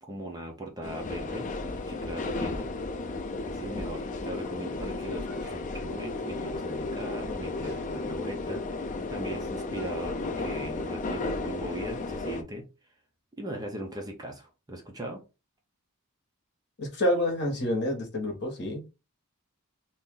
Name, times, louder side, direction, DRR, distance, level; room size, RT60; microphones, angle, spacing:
voice 1, 0.0-2.7 3.5-12.6 13.4-15.2, right 1 dB, 15° right, 0.6 m, -39 dB
sound 1, 0.8-12.4, left 3 dB, 35° left, 0.4 m, -34 dB
sound 2, 5.2-6.0 6.8-7.2 7.6-7.9 9.7-10.1, left 1 dB, 50° right, 1.0 m, -49 dB
voice 2, 16.8-18.8, left 1 dB, 50° left, 1.2 m, -28 dB
2.8 x 2.6 x 3.7 m
head